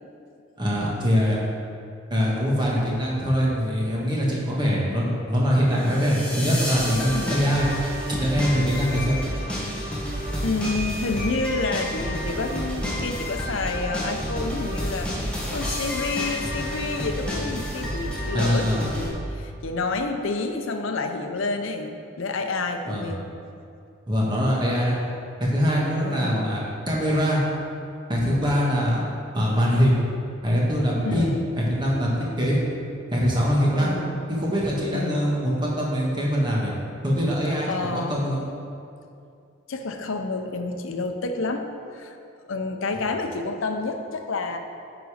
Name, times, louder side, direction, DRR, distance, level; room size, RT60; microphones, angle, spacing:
voice 1, 0.6-1.4 2.1-7.7 8.1-9.2 18.3-18.8 22.9-23.1 24.1-25.0 25.4-27.4 28.1-29.0 29.3-30.0 30.4-31.3 31.6-32.6 33.1-33.9 34.4-36.7 37.0-37.7 37.9-38.4, equal, 20° right, -4 dB, 1.4 m, -23 dB
sound 1, 5.8-19.1, equal, 5° left, 1.1 m, -30 dB
voice 2, 7.1-7.5 10.4-23.2 26.0-26.5 31.0-31.5 33.8-34.2 34.9-35.3 37.7-38.3 39.7-41.6 41.9-42.2 42.5-44.6, left 3 dB, 70° left, 5 dB, 0.6 m, -29 dB
9.8 x 4.0 x 4.9 m, 2.5 s
head